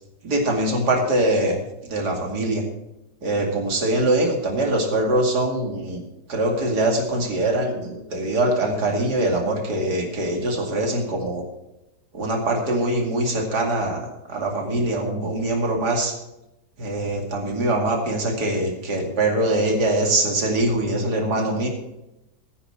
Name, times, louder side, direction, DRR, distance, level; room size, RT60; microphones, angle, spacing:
voice 1, 0.2-2.6 3.2-11.4 12.1-16.1 16.8-21.7, right 1 dB, 65° right, 2 dB, 2.9 m, -23 dB
14.5 x 9.6 x 4.4 m, 0.92 s
omnidirectional pair, 1.9 m